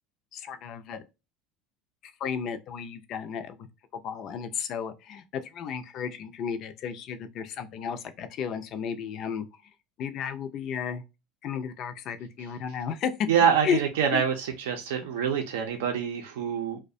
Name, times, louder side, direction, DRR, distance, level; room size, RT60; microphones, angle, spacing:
voice 1, 0.3-1.0 2.0-3.6 3.9-9.5 10.0-11.0 11.4-13.1 13.6-13.8 14.1-14.2, left 7 dB, 55° left, 0.4 m, -33 dB
voice 2, 13.3-16.8, right 7 dB, 85° right, 0.5 m, -26 dB
2.3 x 2.1 x 2.6 m
supercardioid pair, 100°, 0 cm